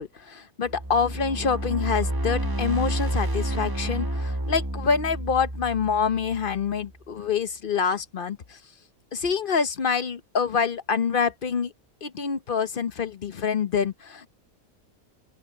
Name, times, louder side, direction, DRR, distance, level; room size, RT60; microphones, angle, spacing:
voice 1, 0.0-8.6 9.1-11.7 12.0-14.3, left 6 dB, 45° left, 0.9 m, -26 dB
sound 1, 0.6-6.8, right 1 dB, 15° right, 1.6 m, -30 dB
open air
omnidirectional pair, 1.5 m